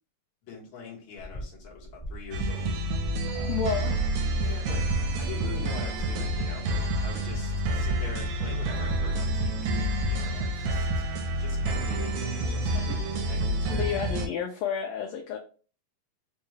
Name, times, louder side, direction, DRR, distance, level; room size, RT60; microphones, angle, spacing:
voice 1, 0.4-2.7 3.3-3.6 4.4-4.8 5.2-6.7 7.0-9.8 10.1-10.9 11.4-13.8, left 5 dB, 55° left, -4 dB, 1.5 m, -44 dB
sound 1, 1.2-5.4 5.7-10.0, right 1 dB, 30° left, 1.1 m, -39 dB
sound 2, 2.3-14.3, right 1 dB, 80° right, 1.9 m, -28 dB
voice 2, 3.5-4.0 12.9-13.0 13.7-15.4, left 7 dB, 80° left, 3 dB, 1.6 m, -31 dB
4.6 x 2.2 x 3.1 m, 0.39 s
omnidirectional pair, 3.4 m